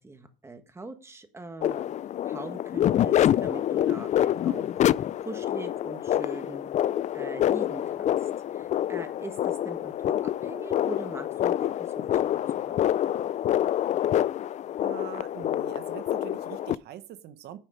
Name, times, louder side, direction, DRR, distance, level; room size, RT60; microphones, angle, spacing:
voice 1, 0.0-1.8 2.2-4.8 5.2-6.7 7.1-12.9, right 2 dB, 15° right, 1.6 m, -42 dB
sound 1, 1.6-16.7, left 11 dB, 45° left, 0.4 m, -27 dB
voice 2, 14.8-17.6, right 11 dB, 75° right, 1.1 m, -43 dB
10.0 x 6.5 x 5.1 m
cardioid pair, 110°, 17 cm